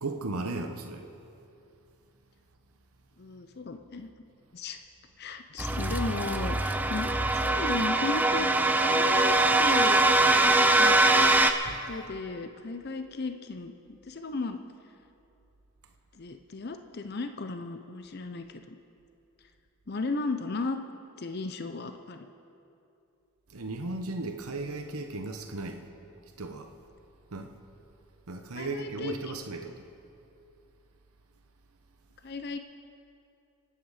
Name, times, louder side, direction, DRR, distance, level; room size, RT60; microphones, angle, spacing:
voice 1, 0.0-1.1 11.6-11.8 23.5-25.8 26.4-26.7 27.3-27.5 28.3-29.8, right 2 dB, 80° right, 5 dB, 1.0 m, -36 dB
voice 2, 3.2-4.1 4.5-4.8 5.2-8.5 8.8-10.0 10.8-11.0 11.9-14.6 16.1-18.8 19.9-20.8 21.2-22.3 28.5-29.3 32.2-32.6, left 3 dB, 45° left, 7 dB, 0.6 m, -35 dB
sound 1, 5.6-11.5, right 2 dB, 10° right, 0.5 m, -23 dB
26.0 x 8.8 x 4.9 m, 2.7 s
head